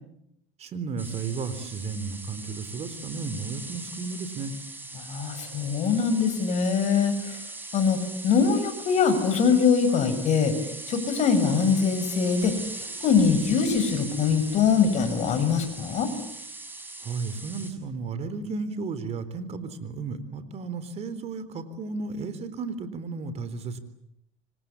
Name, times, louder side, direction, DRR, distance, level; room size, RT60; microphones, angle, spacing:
voice 1, 0.6-4.5 17.0-23.8, right 4 dB, 40° right, 13 dB, 3.9 m, -33 dB
sound 1, 1.0-17.7, right 2 dB, 10° right, 7.4 m, -40 dB
voice 2, 4.9-7.4 7.7-8.0 8.2-10.5 10.9-12.5 13.0-16.1, left 6 dB, 45° left, 9 dB, 6.5 m, -23 dB
27.5 x 25.0 x 8.5 m, 0.78 s
supercardioid pair, 115°, 17 cm